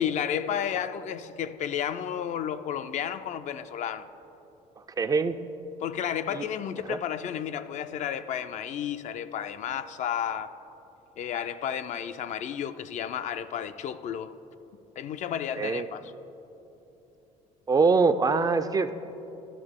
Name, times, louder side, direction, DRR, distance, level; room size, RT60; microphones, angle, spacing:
voice 1, 0.0-4.1 5.8-10.5 11.2-14.3 15.0-16.1, left 9 dB, 55° left, 11 dB, 0.4 m, -32 dB
voice 2, 5.0-5.3 6.3-6.4 6.9-7.0 15.6-15.9 17.7-18.9, right 4 dB, 25° right, 10 dB, 0.3 m, -23 dB
12.5 x 6.3 x 3.6 m, 3.0 s
cardioid pair, 95°, 15 cm